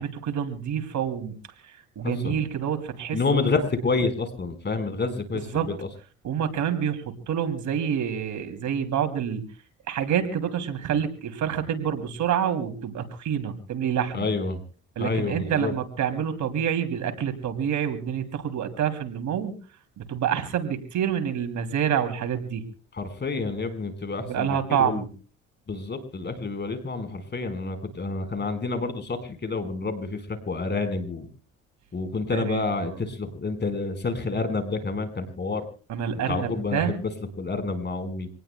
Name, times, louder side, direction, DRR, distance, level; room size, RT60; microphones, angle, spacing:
voice 1, 0.0-1.3 1.6-3.5 5.3-5.7 6.2-9.4 9.9-14.3 15.0-19.6 20.0-22.6 24.3-25.1 32.3-33.0 35.9-36.9, right 8 dB, 75° right, 7 dB, 2.9 m, -27 dB
voice 2, 2.0-2.4 3.1-5.9 14.1-14.6 15.0-15.7 22.9-25.0 25.7-31.3 31.9-35.6 36.3-37.1 37.4-38.3, left 3 dB, 35° left, 9 dB, 4.5 m, -28 dB
26.5 x 19.0 x 2.2 m, 0.39 s
cardioid pair, 90°, 30 cm